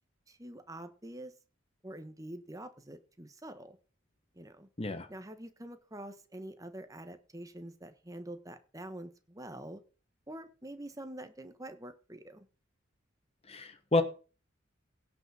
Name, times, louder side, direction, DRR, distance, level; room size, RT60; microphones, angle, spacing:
voice 1, 0.3-1.3 1.8-3.8 4.3-4.7 5.1-9.8 10.3-12.5, right 1 dB, 15° right, 9 dB, 1.3 m, -46 dB
voice 2, 13.5-14.0, left 2 dB, 30° left, 9 dB, 1.2 m, -29 dB
17.0 x 6.0 x 5.7 m, 0.36 s
head